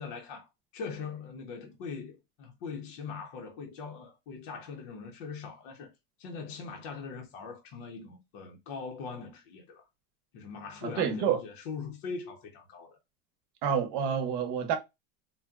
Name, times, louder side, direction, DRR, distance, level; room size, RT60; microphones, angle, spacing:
voice 1, 0.0-5.9 6.2-9.8 10.3-13.0, left 5 dB, 55° left, 0.8 m, -41 dB
voice 2, 10.8-11.4 13.6-14.8, right 7 dB, 50° right, 0.8 m, -28 dB
3.8 x 2.1 x 2.3 m
supercardioid pair, 170°, 30 cm